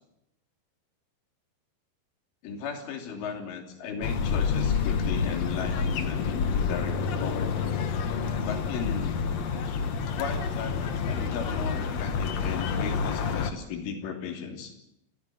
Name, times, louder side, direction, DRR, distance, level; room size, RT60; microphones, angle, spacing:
voice 1, 2.4-7.5 8.4-9.2 10.2-14.7, left 6 dB, 85° left, 5 dB, 5.6 m, -36 dB
sound 1, 4.0-13.5, left 5 dB, 65° left, 1.7 m, -28 dB
29.5 x 14.0 x 9.4 m, 0.79 s
omnidirectional pair, 5.5 m